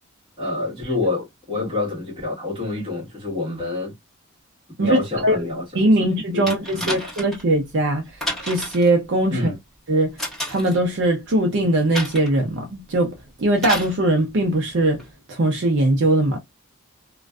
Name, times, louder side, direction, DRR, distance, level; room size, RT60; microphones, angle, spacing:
voice 1, 0.4-4.0 4.8-5.8 6.3-7.1 9.3-9.6, left 2 dB, 25° right, 1.2 m, -27 dB
voice 2, 4.8-5.5 5.7-8.0 8.4-9.5 9.9-10.1 10.5-13.1 13.4-15.0 15.3-16.4, right 1 dB, 55° right, 0.6 m, -20 dB
sound 1, 6.5-7.4 8.2-8.9 10.2-10.8 11.9-12.4 13.6-14.0 15.0-15.1, equal, ahead, 1.2 m, -30 dB
2.5 x 2.2 x 2.2 m
head